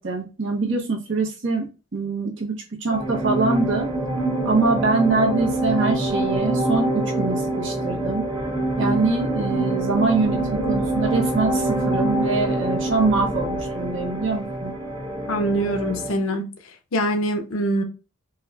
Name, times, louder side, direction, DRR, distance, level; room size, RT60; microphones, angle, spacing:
voice 1, 0.0-1.7 1.9-3.9 4.4-8.2 8.8-14.7, right 3 dB, 60° right, 1.0 m, -24 dB
sound 1, 2.9-16.2, right 2 dB, 20° right, 1.3 m, -25 dB
voice 2, 15.3-16.4 16.9-17.8, right 1 dB, 85° left, 0.7 m, -23 dB
4.5 x 2.4 x 2.2 m
head